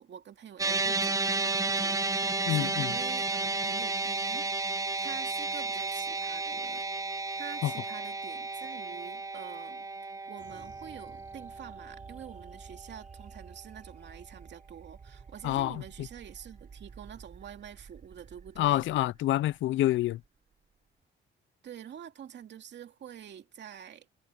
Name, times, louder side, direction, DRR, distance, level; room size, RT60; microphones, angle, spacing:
voice 1, 0.0-9.9 10.3-18.9 21.6-24.1, right 9 dB, 60° right, 2.5 m, -47 dB
sound 1, 0.6-13.0, right 3 dB, 15° right, 0.9 m, -33 dB
voice 2, 2.5-2.9 7.6-7.7 15.4-16.1 18.6-20.2, left 14 dB, 75° left, 0.5 m, -28 dB
sound 2, 10.4-21.0, right 5 dB, 40° right, 5.3 m, -52 dB
cardioid pair, 90°, 20 cm